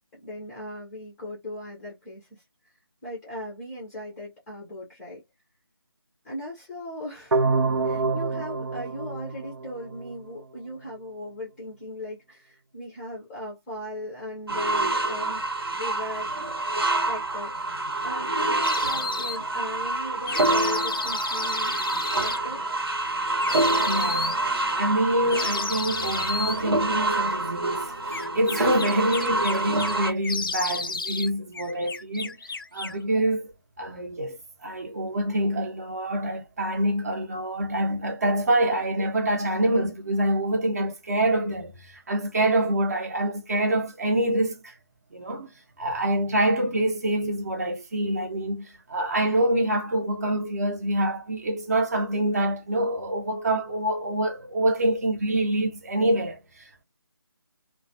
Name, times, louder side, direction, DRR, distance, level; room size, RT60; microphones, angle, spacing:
voice 1, 0.1-2.4 3.0-5.2 6.2-15.4 15.7-16.3 17.0-17.5 18.0-21.8 22.2-22.6, left 1 dB, 5° left, 0.5 m, -38 dB
sound 1, 7.3-10.3, right 3 dB, 90° right, 0.5 m, -27 dB
sound 2, 14.5-30.1, right 2 dB, 70° right, 1.0 m, -27 dB
sound 3, 18.6-19.4 20.3-22.4 23.4-24.4 25.3-26.6 28.1-30.0 30.2-31.3 31.5-33.0, left 4 dB, 60° left, 0.5 m, -32 dB
voice 2, 23.8-24.4 24.8-32.4 32.7-33.5 33.8-44.7 45.1-45.5 45.8-56.8, right 1 dB, 40° right, 0.7 m, -26 dB
2.3 x 2.1 x 2.6 m
figure-of-eight pair, 160°, 13 cm